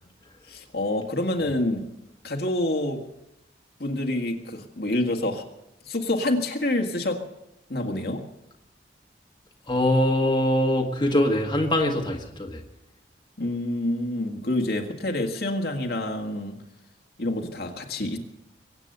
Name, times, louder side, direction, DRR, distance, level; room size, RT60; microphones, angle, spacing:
voice 1, 0.5-1.9 2.2-3.0 3.8-5.4 5.9-7.2 7.7-8.2 13.4-16.6 17.2-18.2, left 1 dB, 60° left, 3 dB, 1.9 m, -27 dB
voice 2, 9.7-12.6, left 1 dB, 25° left, 0 dB, 1.7 m, -23 dB
23.5 x 8.9 x 6.8 m, 0.88 s
head